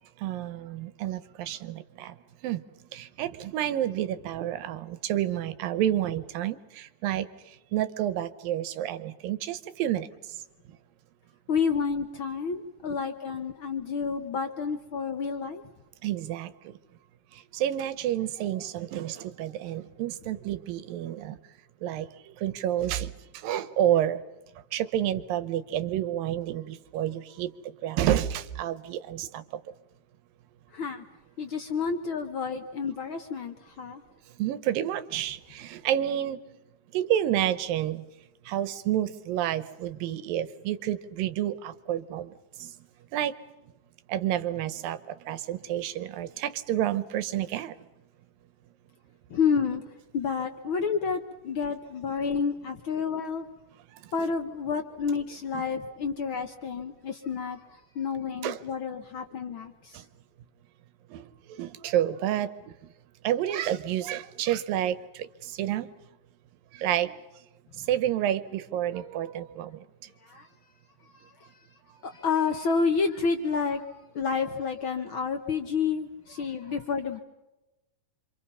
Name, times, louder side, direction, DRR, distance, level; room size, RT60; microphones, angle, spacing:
voice 1, 0.2-2.2 2.4-10.4 16.0-16.8 17.3-21.4 21.8-24.2 24.7-29.7 34.4-36.4 36.9-38.1 38.4-42.7 43.1-43.3 44.1-47.8 53.9-54.1 58.4-58.6 59.9-60.1 61.1-62.9 63.2-65.9 66.7-67.2 67.8-69.9 71.9-72.0, right 11 dB, 80° right, 14 dB, 2.7 m, -30 dB
voice 2, 11.5-15.6 30.7-31.0 31.4-34.0 49.3-49.8 50.1-53.5 54.1-60.0 70.2-70.5 71.1-71.5 72.0-73.8 74.1-77.2, left 5 dB, 70° left, 7 dB, 1.2 m, -30 dB
27.5 x 25.5 x 5.6 m, 1.0 s
omnidirectional pair, 4.0 m